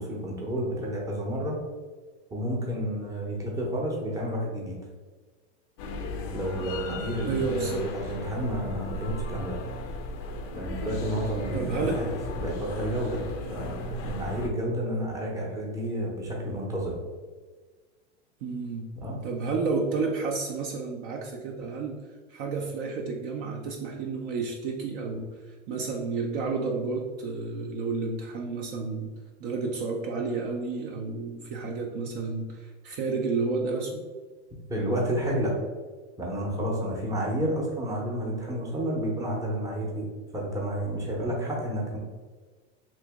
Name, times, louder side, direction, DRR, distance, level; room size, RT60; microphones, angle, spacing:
voice 1, 0.0-1.6 2.3-4.7 6.3-9.6 10.5-12.1 12.3-13.2 13.5-17.0 19.0-19.2 34.7-35.5 36.2-40.1 40.3-42.0, equal, 10° right, -2 dB, 0.7 m, -30 dB
sound 1, 5.8-14.5, left 2 dB, 35° left, 0.4 m, -36 dB
voice 2, 7.3-7.9 11.5-12.0 18.4-18.9 19.2-22.0 22.3-29.1 29.4-34.0, right 4 dB, 50° right, 1 dB, 0.5 m, -31 dB
3.0 x 2.6 x 3.4 m, 1.4 s
hypercardioid pair, 120°, 36 cm